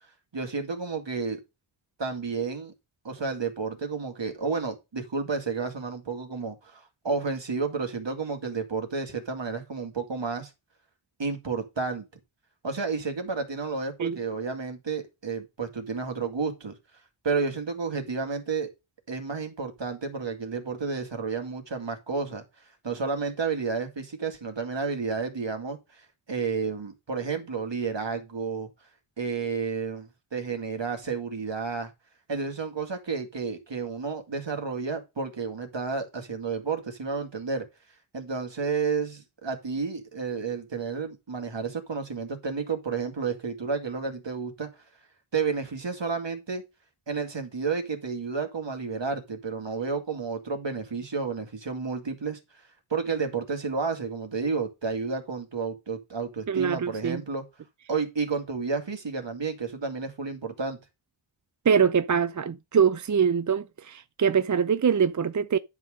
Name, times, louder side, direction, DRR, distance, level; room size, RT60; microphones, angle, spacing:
voice 1, 0.3-1.4 2.0-2.7 3.0-10.5 11.2-12.1 12.6-16.8 17.2-18.7 19.1-22.4 22.8-28.7 29.2-31.9 32.3-37.7 38.1-44.7 45.3-46.6 47.1-52.4 52.9-57.4 57.9-60.8, right 4 dB, 60° right, 2.3 m, -31 dB
voice 2, 56.5-57.2 61.7-65.6, right 7 dB, 40° right, 0.5 m, -23 dB
10.5 x 3.7 x 6.5 m
cardioid pair, 40°, 50 cm